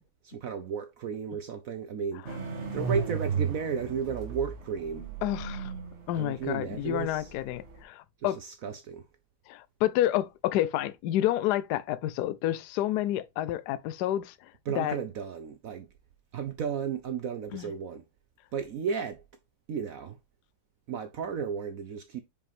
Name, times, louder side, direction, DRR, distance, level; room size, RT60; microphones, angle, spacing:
voice 1, 0.2-2.3 2.7-5.1 6.1-7.3 8.2-9.0 14.7-15.9 16.3-18.0 18.5-19.2 19.7-20.2 20.9-22.2, right 6 dB, 65° right, 0.9 m, -34 dB
sound 1, 2.2-7.8, right 6 dB, 40° right, 1.6 m, -35 dB
voice 2, 5.2-5.7 6.1-8.4 9.5-14.5 14.8-15.0 17.5-17.7, left 13 dB, 75° left, 1.0 m, -29 dB
5.4 x 5.2 x 3.5 m
omnidirectional pair, 2.0 m